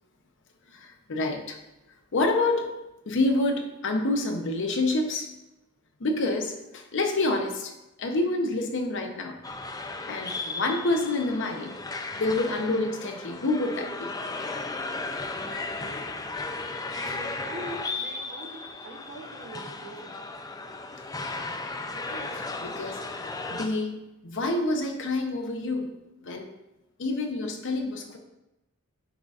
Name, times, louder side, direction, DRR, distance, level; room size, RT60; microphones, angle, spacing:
voice 1, 0.7-1.6 2.1-2.7 3.1-5.3 6.0-7.7 8.0-9.4 10.0-11.8 12.2-14.1 15.2-15.3 22.1-25.9 26.2-26.5 27.0-28.2, left 2 dB, 60° left, 4 dB, 0.8 m, -28 dB
sound 1, 9.4-23.7, left 3 dB, 15° left, 0.4 m, -35 dB
voice 2, 15.4-16.4 16.9-20.2, right 1 dB, 50° right, 2 dB, 0.9 m, -43 dB
10.5 x 3.9 x 2.4 m, 0.96 s
head